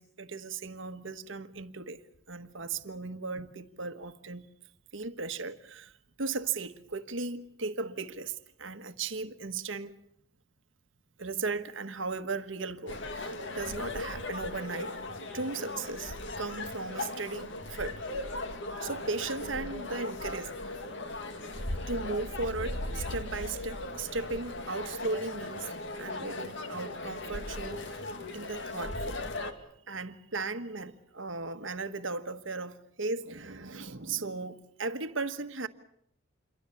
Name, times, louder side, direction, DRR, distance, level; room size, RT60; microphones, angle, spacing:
voice 1, 0.0-2.0 2.3-4.5 4.9-10.0 11.2-15.0 15.3-18.0 18.8-20.8 21.9-25.7 26.0-28.0 28.3-29.2 29.9-35.7, right 3 dB, 75° right, 1.3 m, -36 dB
sound 1, 12.9-29.5, left 2 dB, 65° left, 2.3 m, -38 dB
28.0 x 23.0 x 7.1 m
head